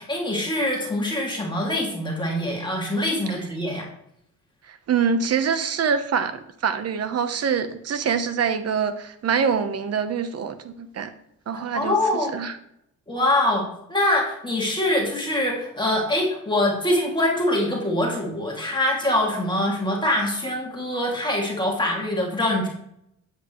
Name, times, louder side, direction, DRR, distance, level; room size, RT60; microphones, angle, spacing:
voice 1, 0.0-3.9 11.7-12.4 13.1-22.7, left 1 dB, 15° left, -2 dB, 2.5 m, -24 dB
voice 2, 4.7-11.1 11.5-12.0 12.3-12.5, right 6 dB, 55° right, 10 dB, 1.0 m, -25 dB
9.1 x 8.6 x 3.2 m, 0.75 s
cardioid pair, 90°, 30 cm